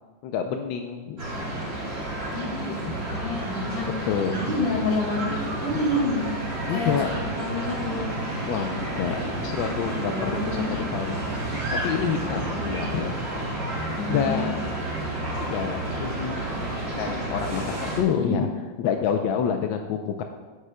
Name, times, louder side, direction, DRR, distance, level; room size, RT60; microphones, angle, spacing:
voice 1, 0.2-1.2 2.9-3.0 4.1-4.4 5.7-5.9 6.7-7.1 8.5-11.2 11.8-13.1 14.1-14.6 15.4-18.5 18.8-20.2, left 7 dB, 85° left, 4 dB, 1.4 m, -28 dB
sound 1, 1.2-18.0, right 1 dB, 50° right, 2.8 m, -30 dB
voice 2, 2.3-6.2 6.7-8.1 10.1-10.8 12.0-13.1 14.0-14.5 18.1-18.4, left 2 dB, 50° left, -1 dB, 2.5 m, -29 dB
15.5 x 8.2 x 2.2 m, 1.3 s
omnidirectional pair, 2.1 m